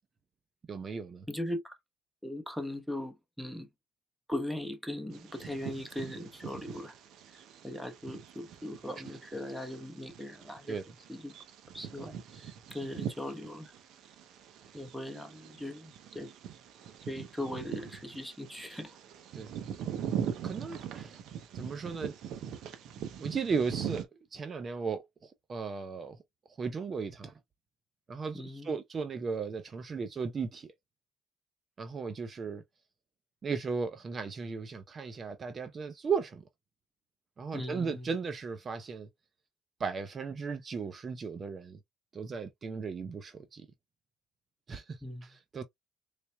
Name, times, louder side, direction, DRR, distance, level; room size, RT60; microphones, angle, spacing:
voice 1, 0.7-1.3 10.7-10.8 19.3-19.5 20.4-21.2 21.5-22.1 23.2-26.2 26.6-27.3 28.1-30.7 31.8-32.6 33.4-36.4 37.4-39.1 39.8-41.8 42.1-43.7 44.7-45.6, right 5 dB, 40° right, 0.6 m, -36 dB
voice 2, 1.3-1.8 2.2-3.7 4.3-7.0 7.3-10.8 11.1-11.3 11.7-13.7 14.7-16.3 17.1-19.0 28.3-28.7 37.5-38.1 45.0-45.4, left 1 dB, ahead, 1.0 m, -39 dB
Bird vocalization bird call bird song, 5.1-24.0, right 9 dB, 65° right, 0.8 m, -42 dB
4.0 x 3.3 x 2.2 m
supercardioid pair, 75°, 0 cm